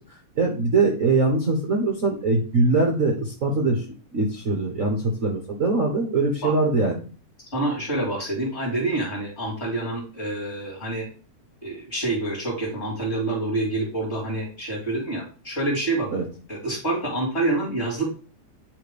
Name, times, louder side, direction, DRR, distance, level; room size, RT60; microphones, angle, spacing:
voice 1, 0.3-3.8 4.1-6.9 16.1-16.2, right 3 dB, 75° right, 1 dB, 0.7 m, -22 dB
voice 2, 7.5-11.1 11.6-16.2 16.5-18.1, right 2 dB, 25° left, -2 dB, 2.4 m, -27 dB
8.9 x 3.4 x 5.1 m, 0.37 s
omnidirectional pair, 3.4 m